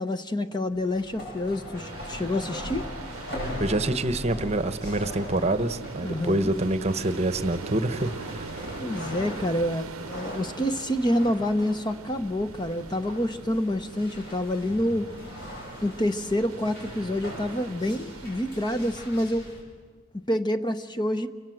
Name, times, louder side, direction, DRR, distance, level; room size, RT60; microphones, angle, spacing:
voice 1, 0.0-2.9 6.0-6.5 8.8-15.1 15.8-19.5 20.3-21.3, left 1 dB, 20° left, 9 dB, 0.7 m, -27 dB
sound 1, 0.6-19.6, equal, 50° left, 7.7 m, -40 dB
sound 2, 1.8-19.0, right 4 dB, 80° right, 0.8 m, -43 dB
voice 2, 3.6-8.5, right 1 dB, 30° right, 12 dB, 1.0 m, -26 dB
29.5 x 25.5 x 7.7 m, 1.5 s
head